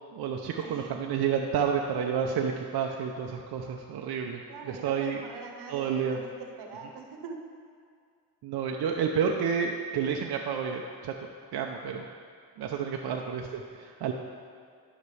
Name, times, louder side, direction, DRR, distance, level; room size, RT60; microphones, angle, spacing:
voice 1, 0.1-5.2 5.7-6.2 8.4-11.1 11.5-12.0 12.6-14.1, right 7 dB, 70° right, 1 dB, 0.7 m, -30 dB
voice 2, 0.6-1.0 4.5-7.4 13.1-13.2, right 5 dB, 90° right, 3 dB, 1.1 m, -43 dB
12.0 x 5.9 x 3.3 m, 2.2 s
cardioid pair, 80°, 39 cm